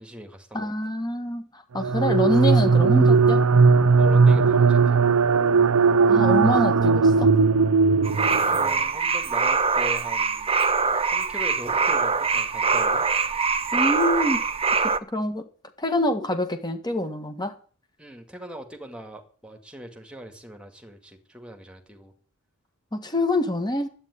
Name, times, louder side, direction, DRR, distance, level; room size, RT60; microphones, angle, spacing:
voice 1, 0.0-0.7 3.9-5.0 8.5-10.5 11.1-13.1 18.0-22.1, equal, 5° right, 2.2 m, -40 dB
voice 2, 0.5-3.4 6.1-7.3 13.7-14.4 14.8-15.4 15.8-17.6 22.9-23.9, left 1 dB, 20° left, 1.7 m, -26 dB
sound 1, 1.8-8.7, right 4 dB, 70° right, 0.6 m, -18 dB
sound 2, 8.0-15.0, right 5 dB, 25° right, 0.8 m, -23 dB
11.0 x 9.1 x 9.7 m
head